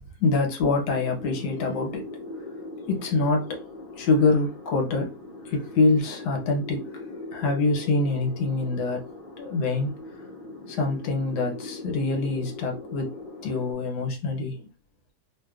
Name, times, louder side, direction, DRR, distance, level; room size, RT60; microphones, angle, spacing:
voice 1, 0.2-2.1 2.9-3.6 3.9-5.2 5.4-7.0 7.3-9.0 9.4-9.9 10.7-13.2 13.4-14.7, left 3 dB, 75° left, 1.3 m, -25 dB
sound 1, 0.9-13.7, left 2 dB, 45° left, 0.8 m, -40 dB
3.1 x 2.2 x 2.3 m
omnidirectional pair, 1.8 m